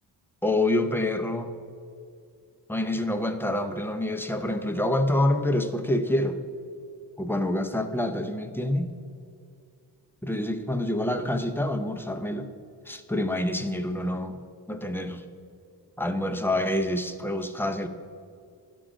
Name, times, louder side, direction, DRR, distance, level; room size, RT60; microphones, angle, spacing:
voice 1, 0.4-1.5 2.7-6.4 7.2-8.9 10.2-12.5 12.9-14.4 14.7-15.3 16.0-17.9, left 1 dB, 5° left, 6 dB, 0.5 m, -27 dB
11.5 x 3.8 x 5.0 m, 2.4 s
cardioid pair, 90°, 43 cm